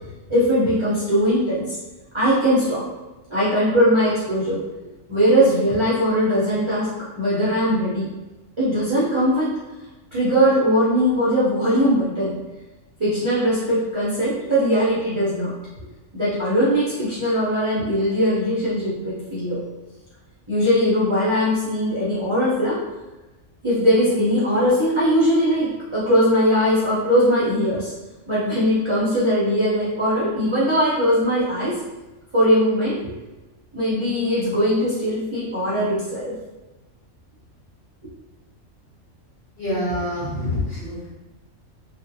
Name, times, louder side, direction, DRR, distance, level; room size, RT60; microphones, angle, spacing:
voice 1, 0.3-1.8 2.1-2.8 3.3-4.6 5.1-8.1 8.6-9.5 10.1-12.4 13.0-15.5 16.1-19.6 20.5-22.8 23.6-27.9 28.3-31.8 32.3-33.0 33.7-36.3, equal, 40° right, -10 dB, 0.4 m, -20 dB
voice 2, 39.6-41.1, left 1 dB, 40° left, -10 dB, 1.1 m, -26 dB
2.5 x 2.0 x 2.6 m, 1.1 s
omnidirectional pair, 1.3 m